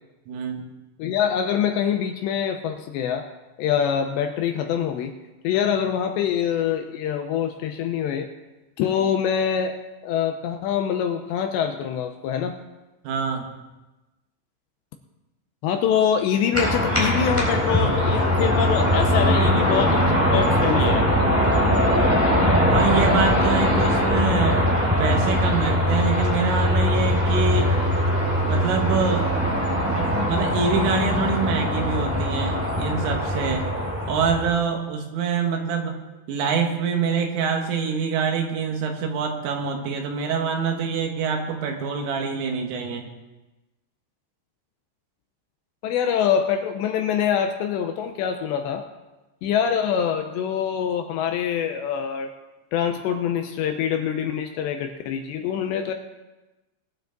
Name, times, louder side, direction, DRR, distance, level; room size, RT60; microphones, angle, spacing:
voice 1, 0.3-0.7 13.1-13.5 22.7-24.7 25.0-27.7 28.4-29.3 30.0-33.7 34.1-35.9 36.3-43.0, right 5 dB, 85° right, 3 dB, 4.1 m, -25 dB
voice 2, 1.0-3.3 3.6-5.1 5.4-8.3 8.8-9.8 10.0-12.6 15.6-20.0 20.3-21.1 45.8-48.8 49.4-52.3 52.7-55.9, left 8 dB, 80° left, 6 dB, 2.7 m, -24 dB
sound 1, 16.5-34.5, equal, 5° right, 2.4 m, -21 dB
21.0 x 9.2 x 4.0 m, 1.1 s
omnidirectional pair, 5.6 m